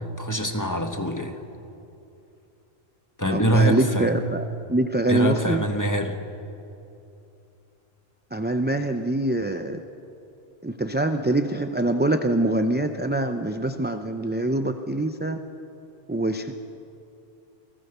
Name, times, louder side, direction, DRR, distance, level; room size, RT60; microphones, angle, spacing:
voice 1, 0.0-1.4 3.2-4.1 5.1-6.2, right 1 dB, 15° left, 5 dB, 1.6 m, -24 dB
voice 2, 3.3-5.6 8.3-9.8 10.6-15.4 16.1-16.5, right 1 dB, 10° right, 7 dB, 0.6 m, -24 dB
28.5 x 19.0 x 6.8 m, 2.8 s
omnidirectional pair, 1.1 m